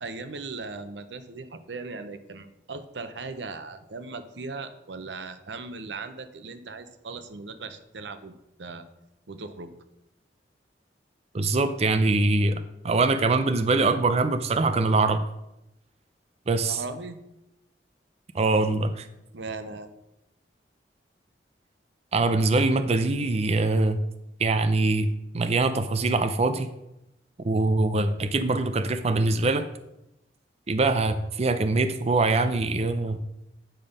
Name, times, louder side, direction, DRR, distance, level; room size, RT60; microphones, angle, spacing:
voice 1, 0.0-8.8 9.3-9.7 16.6-17.2 19.3-19.9, right 3 dB, 85° right, 10 dB, 0.8 m, -38 dB
voice 2, 11.3-15.2 16.5-16.8 18.3-19.1 22.1-24.0 24.4-25.1 25.3-26.7 27.4-29.7 30.7-33.2, right 3 dB, 35° right, 9 dB, 0.5 m, -23 dB
9.1 x 5.3 x 5.4 m, 0.87 s
head